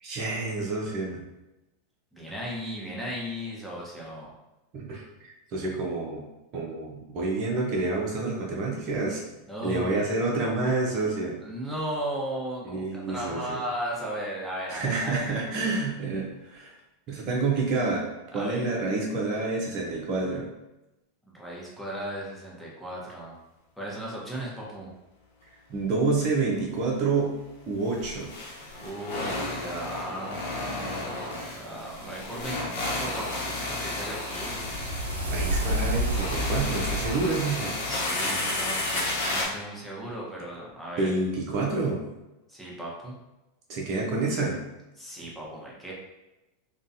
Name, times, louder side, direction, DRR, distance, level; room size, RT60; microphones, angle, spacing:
voice 1, 0.0-1.2 4.7-6.2 6.5-9.2 9.6-11.3 12.6-13.6 14.7-16.7 17.1-18.0 18.3-20.5 25.7-27.4 27.7-28.3 35.3-37.7 41.0-42.0 43.7-44.6, right 3 dB, 40° right, -2 dB, 0.7 m, -28 dB
voice 2, 2.1-4.3 9.5-10.0 11.4-15.4 18.3-18.7 21.4-23.4 23.8-24.9 28.8-34.8 37.8-41.1 42.5-43.2 45.0-45.9, right 1 dB, 5° left, -5 dB, 1.1 m, -36 dB
sound 1, 25.7-25.9 26.1-26.2 27.8-39.4, left 2 dB, 65° left, 1.0 m, -32 dB
sound 2, 33.0-38.3, right 1 dB, 80° right, 0.5 m, -31 dB
3.7 x 2.3 x 2.7 m, 0.97 s
figure-of-eight pair, 90°, 0 cm